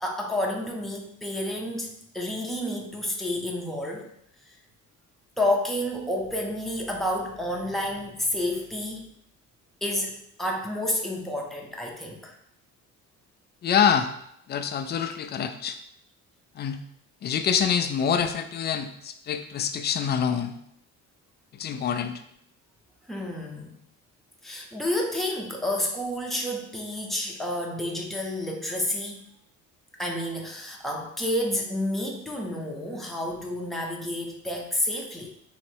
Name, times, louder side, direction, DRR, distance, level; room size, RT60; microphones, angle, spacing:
voice 1, 0.0-4.1 4.5-4.6 5.4-9.0 9.8-12.3 21.7-21.8 23.1-23.7 24.4-29.2 30.0-35.3, left 1 dB, ahead, -2 dB, 0.7 m, -30 dB
voice 2, 13.6-14.1 14.5-15.8 16.6-16.8 17.2-20.5 21.5-22.2, left 7 dB, 30° left, 8 dB, 0.4 m, -26 dB
3.9 x 3.0 x 4.5 m, 0.73 s
cardioid pair, 140°, 33 cm